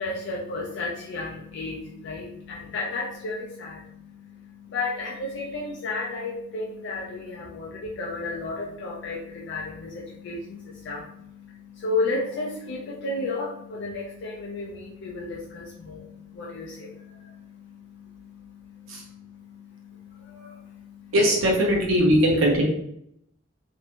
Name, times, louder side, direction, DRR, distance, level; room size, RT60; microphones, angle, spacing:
voice 1, 0.0-21.1, left 3 dB, 60° left, -3 dB, 0.4 m, -33 dB
voice 2, 21.1-22.6, equal, 90° right, -1 dB, 0.6 m, -20 dB
2.5 x 2.1 x 2.8 m, 0.74 s
head